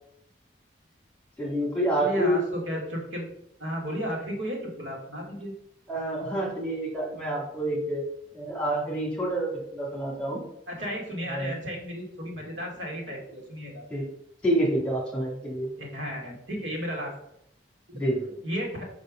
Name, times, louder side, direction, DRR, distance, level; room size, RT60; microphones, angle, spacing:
voice 1, 1.4-2.4 5.9-8.0 8.3-10.4 11.3-11.6 13.9-14.1 14.4-15.7 17.9-18.3, right 1 dB, 5° left, -3 dB, 2.3 m, -28 dB
voice 2, 2.0-3.3 3.6-5.5 10.7-13.8 15.8-17.1 17.9-18.0 18.4-18.9, equal, 85° right, -1 dB, 2.4 m, -33 dB
5.3 x 5.2 x 6.3 m, 0.76 s
head